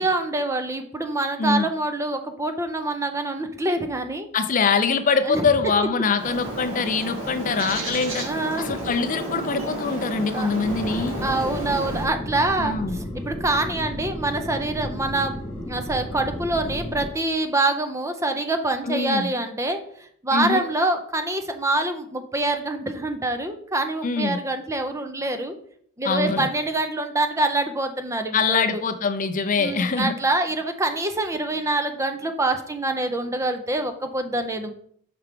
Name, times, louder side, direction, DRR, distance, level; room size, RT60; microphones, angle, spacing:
voice 1, 0.0-4.3 5.3-5.5 8.1-8.8 10.3-10.5 11.2-25.5 26.0-28.8 29.6-34.7, right 2 dB, 15° right, 7 dB, 0.5 m, -25 dB
voice 2, 4.3-8.2 8.6-11.2 12.6-13.0 18.8-19.3 20.3-20.6 24.0-24.4 26.0-26.5 28.3-30.2, left 5 dB, 35° left, 9 dB, 0.5 m, -23 dB
Bird, 6.1-12.1, right 1 dB, 60° right, 2.2 m, -32 dB
sound 1, 10.6-17.1, equal, 10° left, 2.3 m, -33 dB
5.9 x 4.6 x 5.1 m, 0.65 s
head